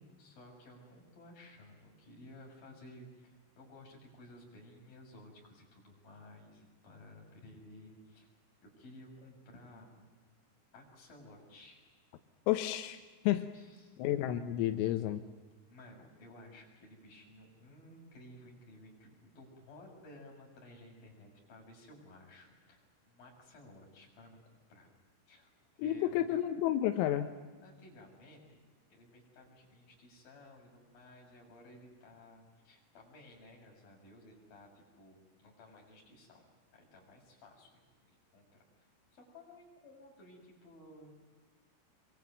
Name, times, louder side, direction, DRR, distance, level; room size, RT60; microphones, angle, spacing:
voice 1, 0.2-8.3 8.6-10.4 10.7-11.8 13.5-14.3 15.7-24.4 24.7-24.9 25.3-26.4 27.6-28.6 28.9-36.4 36.7-38.9 39.1-41.1, left 1 dB, 45° left, -1 dB, 8.5 m, -56 dB
voice 2, 12.5-13.0 13.3-13.5 14.0-15.2 25.8-27.3, left 13 dB, 90° left, 8 dB, 3.8 m, -31 dB
25.0 x 24.5 x 9.3 m, 1.3 s
omnidirectional pair, 5.9 m